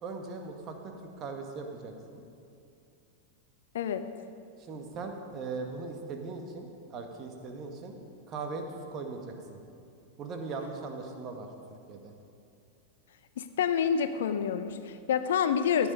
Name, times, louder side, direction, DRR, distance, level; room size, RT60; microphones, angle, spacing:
voice 1, 0.0-2.2 4.6-7.9 8.3-8.6 8.9-9.6 10.2-11.5 11.9-12.1, right 4 dB, 30° right, 4 dB, 1.6 m, -39 dB
voice 2, 3.7-4.1 13.4-15.9, left 7 dB, 60° left, 11 dB, 0.6 m, -28 dB
14.0 x 10.5 x 5.3 m, 2.6 s
figure-of-eight pair, 90°, 0 cm